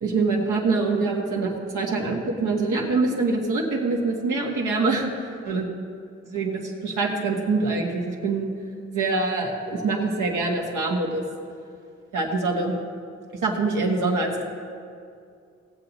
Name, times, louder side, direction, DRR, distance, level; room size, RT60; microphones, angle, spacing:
voice 1, 0.0-5.1 5.5-5.7 6.3-8.5 8.9-11.2 12.1-12.7 13.4-14.4, right 3 dB, 85° right, -1 dB, 1.7 m, -24 dB
17.5 x 7.5 x 4.1 m, 2.4 s
cardioid pair, 65°, 30 cm